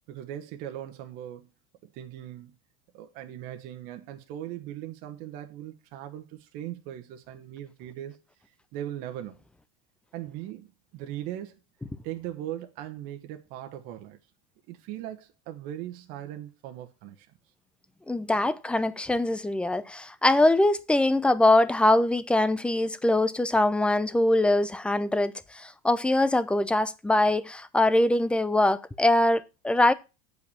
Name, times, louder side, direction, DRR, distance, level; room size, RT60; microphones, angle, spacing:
voice 1, 0.1-1.5 1.8-2.5 2.9-8.2 8.7-9.4 10.1-11.6 12.0-14.2 14.7-17.3, right 12 dB, 55° right, 1.3 m, -39 dB
voice 2, 18.1-29.9, left 1 dB, 5° left, 0.6 m, -23 dB
8.1 x 5.2 x 7.1 m
supercardioid pair, 130°, 18 cm